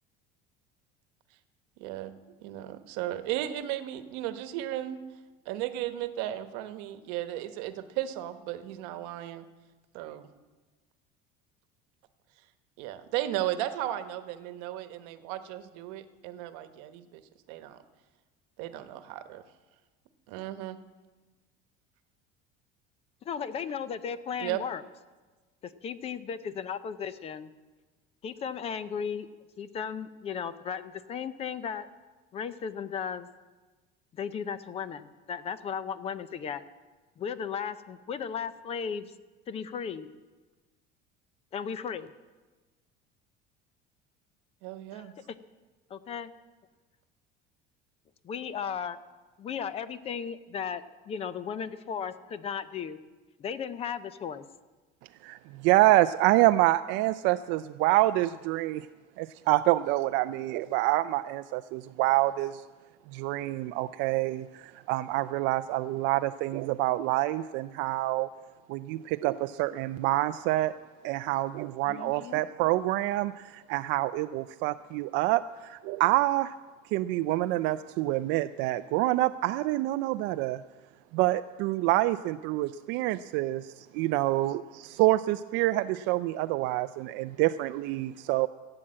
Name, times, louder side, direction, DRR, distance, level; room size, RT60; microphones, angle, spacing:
voice 1, 1.8-2.1 2.4-5.0 5.4-9.4 9.9-10.3 12.8-17.2 17.5-17.8 18.6-19.4 20.3-20.8 24.4-24.6 44.6-45.1, right 13 dB, 80° right, 10 dB, 1.1 m, -35 dB
voice 2, 23.2-24.8 25.6-27.5 28.2-29.3 29.6-31.9 32.3-33.3 34.1-36.6 37.2-39.1 39.5-40.1 41.5-42.1 44.9-45.1 45.9-46.3 48.2-49.0 49.4-53.0 53.4-54.5 71.8-72.4, left 7 dB, 30° left, 14 dB, 0.6 m, -35 dB
voice 3, 55.2-58.9 59.2-62.6 63.1-68.3 68.7-70.8 71.0-76.5 76.9-80.6 81.1-88.5, right 17 dB, 65° right, 10 dB, 0.4 m, -27 dB
15.5 x 8.7 x 7.6 m, 1.3 s
cardioid pair, 155°, 20 cm